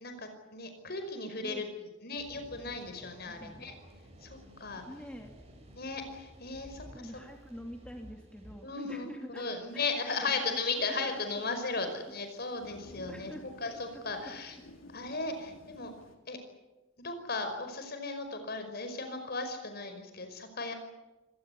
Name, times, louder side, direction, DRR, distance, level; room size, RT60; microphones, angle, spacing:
voice 1, 0.0-1.7 2.0-3.7 4.2-4.8 5.8-6.8 8.6-13.3 13.6-14.6 14.9-15.9 16.3-16.4 17.0-20.7, left 3 dB, 55° left, 7 dB, 5.3 m, -36 dB
sound 1, 2.1-16.1, equal, 35° right, 7.6 m, -56 dB
voice 2, 3.2-3.7 4.8-5.3 6.9-9.5 9.7-9.9 10.2-10.6 11.0-11.2 11.8-11.9 13.1-14.0, equal, 5° left, 3 dB, 2.5 m, -46 dB
Thunder / Rain, 9.7-16.2, left 1 dB, 85° left, 3.2 m, -54 dB
25.0 x 18.5 x 9.5 m, 1.0 s
head